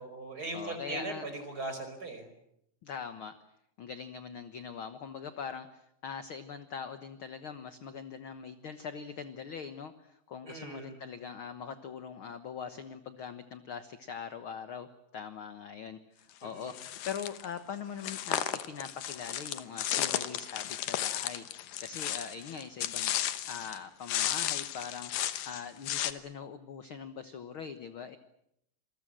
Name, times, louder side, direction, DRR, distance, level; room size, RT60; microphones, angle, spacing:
voice 1, 0.0-2.3 10.4-11.0 16.4-16.7, right 2 dB, 25° right, 7 dB, 5.3 m, -39 dB
voice 2, 0.5-1.3 2.8-3.3 3.8-23.1 23.5-25.1 25.4-28.2, left 6 dB, 55° left, 10 dB, 1.5 m, -42 dB
sound 1, 16.7-17.4 18.0-23.8 24.0-26.1, left 12 dB, 75° left, 2.8 m, -34 dB
28.0 x 22.5 x 7.6 m, 0.76 s
omnidirectional pair, 3.9 m